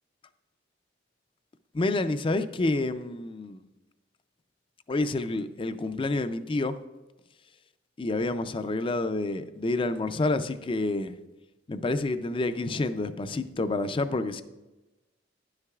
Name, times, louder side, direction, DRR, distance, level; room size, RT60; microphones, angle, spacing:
voice 1, 1.7-3.6 4.9-6.8 8.0-11.1 11.7-14.4, left 2 dB, 30° left, 0.4 m, -28 dB
11.5 x 9.7 x 2.4 m
head